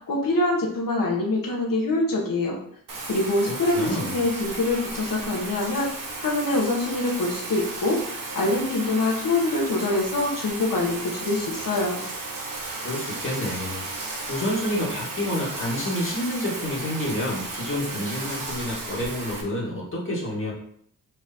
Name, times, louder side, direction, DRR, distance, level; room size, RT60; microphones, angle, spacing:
voice 1, 0.1-2.6 3.1-5.9 6.2-12.0, left 2 dB, 60° left, -1 dB, 1.3 m, -25 dB
Bathtub (filling or washing), 2.9-19.4, right 3 dB, 60° right, 1.1 m, -34 dB
voice 2, 3.5-4.2 12.8-13.8 14.3-20.5, left 1 dB, 35° left, -5 dB, 1.8 m, -29 dB
4.5 x 4.2 x 2.8 m, 0.67 s
wide cardioid pair, 110°, 37 cm